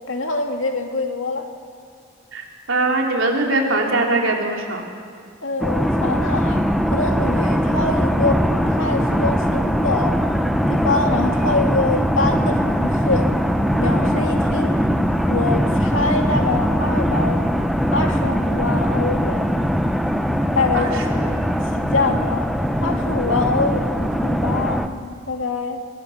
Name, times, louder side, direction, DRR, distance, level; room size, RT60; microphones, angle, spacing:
voice 1, 0.1-1.5 5.4-6.6 6.9-10.1 10.7-13.3 13.8-14.8 15.3-17.5 17.9-19.6 20.5-22.4 22.8-24.8 25.3-25.8, left 3 dB, 80° left, 4 dB, 2.2 m, -24 dB
voice 2, 2.3-4.8 20.7-21.2, right 2 dB, 85° right, 1 dB, 3.3 m, -21 dB
sound 1, 5.6-24.9, equal, ahead, 0.8 m, -21 dB
24.0 x 18.5 x 7.2 m, 2.1 s
head